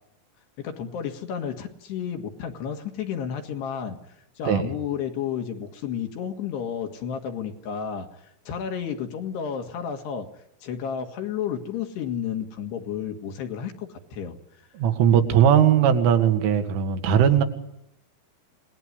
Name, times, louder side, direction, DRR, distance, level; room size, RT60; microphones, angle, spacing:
voice 1, 0.6-4.0 4.4-10.3 10.6-14.4, left 8 dB, 65° left, 5 dB, 3.5 m, -32 dB
voice 2, 14.7-17.4, right 9 dB, 75° right, 7 dB, 4.3 m, -19 dB
27.5 x 20.0 x 9.9 m, 0.82 s
omnidirectional pair, 5.8 m